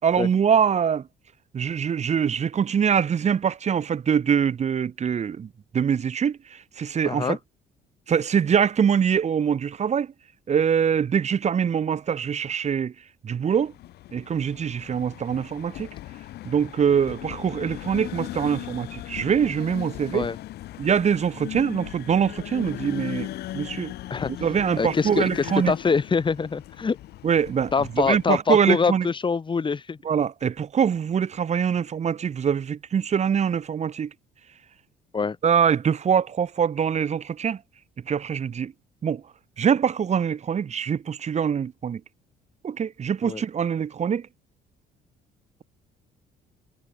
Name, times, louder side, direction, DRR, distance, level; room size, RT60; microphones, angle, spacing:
voice 1, 0.0-1.1 1.5-5.5 5.7-7.4 8.1-10.1 10.5-12.9 13.2-13.7 14.1-15.9 16.4-20.3 20.8-23.3 23.5-23.9 24.4-25.7 27.2-27.7 28.1-29.1 30.0-34.1 35.4-37.6 38.1-38.7 39.0-39.2 39.6-42.0 42.6-44.3, right 7 dB, 40° right, 4.5 m, -23 dB
voice 2, 7.0-7.4 20.1-20.4 24.1-24.5 24.8-27.0 27.7-30.0 35.1-35.4 43.2-43.4, left 5 dB, 30° left, 7.1 m, -24 dB
sound 1, 13.5-28.4, left 15 dB, 75° left, 4.3 m, -38 dB
cardioid pair, 110°, 17 cm